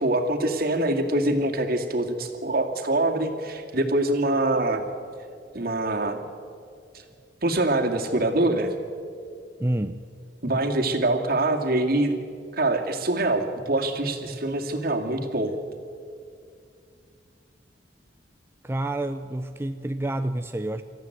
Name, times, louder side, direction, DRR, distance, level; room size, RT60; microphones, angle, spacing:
voice 1, 0.0-4.8 5.5-6.2 7.4-8.7 10.4-12.1 12.5-15.5, right 2 dB, 55° right, 3 dB, 2.4 m, -24 dB
voice 2, 9.6-10.0 18.6-20.8, right 1 dB, 15° right, 8 dB, 0.6 m, -28 dB
25.0 x 14.0 x 9.2 m, 2.4 s
head